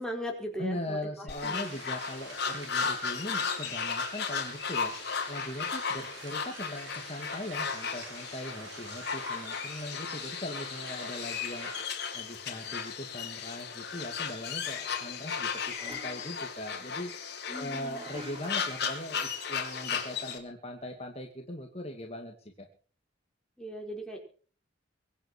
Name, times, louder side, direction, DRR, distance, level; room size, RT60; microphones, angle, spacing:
voice 1, 0.0-1.7 17.5-18.0 23.6-24.2, equal, 5° left, 0 dB, 5.3 m, -38 dB
voice 2, 0.6-4.9 5.3-11.7 12.1-17.1 17.5-22.7, left 1 dB, 30° left, 2 dB, 2.6 m, -40 dB
sound 1, 1.3-20.4, left 6 dB, 55° left, 3.9 m, -35 dB
sound 2, 1.5-11.8, right 4 dB, 75° right, 4.7 m, -48 dB
sound 3, 15.6-16.4 17.9-18.7, equal, 25° right, 3.3 m, -47 dB
24.5 x 8.8 x 6.3 m, 0.43 s
head